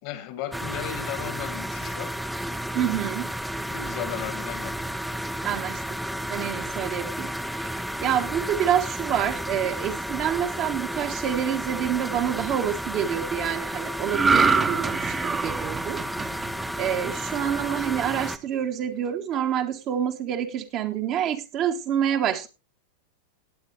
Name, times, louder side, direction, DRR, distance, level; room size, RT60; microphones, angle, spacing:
voice 1, 0.0-2.1 3.7-4.7, left 11 dB, 45° left, 12 dB, 1.7 m, -35 dB
sound 1, 0.5-18.4, equal, ahead, 0.7 m, -32 dB
voice 2, 2.7-3.3 5.4-5.8 6.3-15.2 15.4-16.0 16.7-22.5, right 9 dB, 35° right, 5 dB, 1.3 m, -27 dB
sound 2, 14.1-17.6 18.0-18.2, right 4 dB, 15° right, 1.1 m, -25 dB
18.0 x 8.7 x 2.8 m, 0.25 s
figure-of-eight pair, 90°, 0 cm